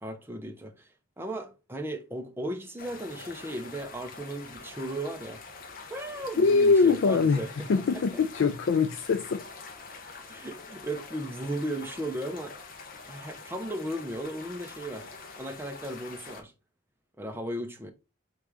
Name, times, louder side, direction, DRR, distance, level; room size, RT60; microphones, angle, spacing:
voice 1, 0.0-0.9 1.2-5.4 5.9-7.7 7.9-8.2 10.3-12.6 13.1-15.1 15.4-16.5 17.2-17.9, right 1 dB, 10° right, 0.5 m, -36 dB
sound 1, 2.8-16.4, left 4 dB, 45° left, 1.0 m, -45 dB
voice 2, 6.4-9.4, left 4 dB, 65° left, 0.4 m, -23 dB
3.6 x 3.2 x 4.7 m
head